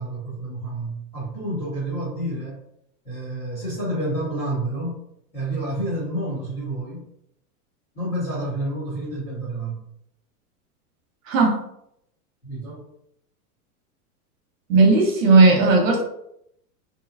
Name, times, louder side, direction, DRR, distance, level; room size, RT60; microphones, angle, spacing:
voice 1, 0.0-2.6 3.0-5.0 5.3-7.0 7.9-9.9 12.4-12.8, right 1 dB, 15° left, -9 dB, 1.0 m, -29 dB
voice 2, 11.3-11.6 14.7-16.0, right 3 dB, 55° right, 0 dB, 1.0 m, -15 dB
3.7 x 2.8 x 2.6 m, 0.75 s
supercardioid pair, 180°, 46 cm